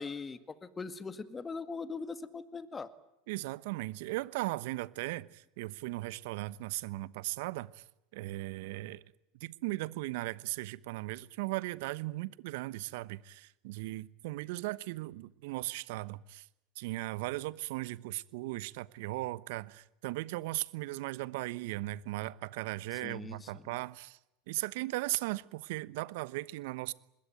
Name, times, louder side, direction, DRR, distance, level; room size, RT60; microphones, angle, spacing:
voice 1, 0.0-2.9 22.9-23.8, left 4 dB, 20° left, 1.9 m, -41 dB
voice 2, 3.3-7.8 8.1-9.0 9.4-16.5 16.8-24.2 24.5-26.9, right 19 dB, 65° right, 1.0 m, -37 dB
24.5 x 21.5 x 9.2 m
hypercardioid pair, 90°, 0 cm